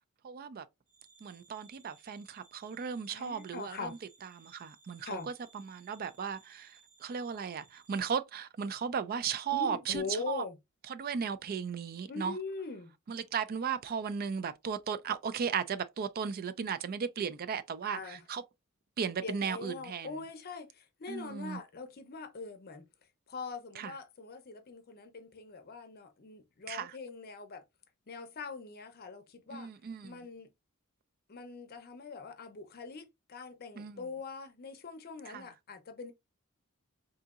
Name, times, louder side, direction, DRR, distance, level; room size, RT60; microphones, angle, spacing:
voice 1, 0.2-0.7 1.2-10.4 10.9-12.4 13.1-18.4 19.0-20.2 21.1-21.6 23.8-23.9 26.7-26.9 29.5-30.2 33.8-34.0 35.3-35.4, right 6 dB, 45° right, 0.4 m, -36 dB
sound 1, 0.9-8.0, right 5 dB, 75° right, 1.7 m, -62 dB
voice 2, 3.1-4.0 5.0-5.3 9.5-10.5 12.1-12.9 17.8-18.2 19.2-22.9 23.3-27.6 28.1-29.7 30.0-30.5 31.3-36.1, left 4 dB, 45° left, 0.6 m, -42 dB
3.8 x 2.7 x 2.3 m
head